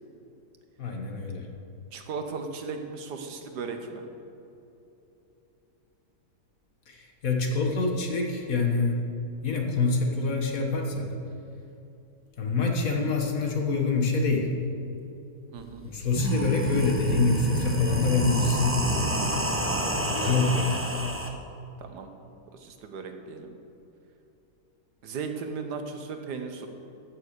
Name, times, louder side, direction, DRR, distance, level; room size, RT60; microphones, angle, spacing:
voice 1, 0.8-1.5 6.9-9.0 9.4-11.1 12.4-14.5 15.8-19.0 20.0-20.9, left 3 dB, 55° left, 2 dB, 1.7 m, -26 dB
voice 2, 1.9-4.0 15.5-15.8 20.2-20.4 21.8-22.1 22.5-23.5 25.0-26.7, right 5 dB, 75° right, 6 dB, 1.5 m, -36 dB
sound 1, 15.6-15.7 16.0-21.3, right 1 dB, 15° right, 0.5 m, -29 dB
14.5 x 6.6 x 6.6 m, 2.9 s
omnidirectional pair, 1.8 m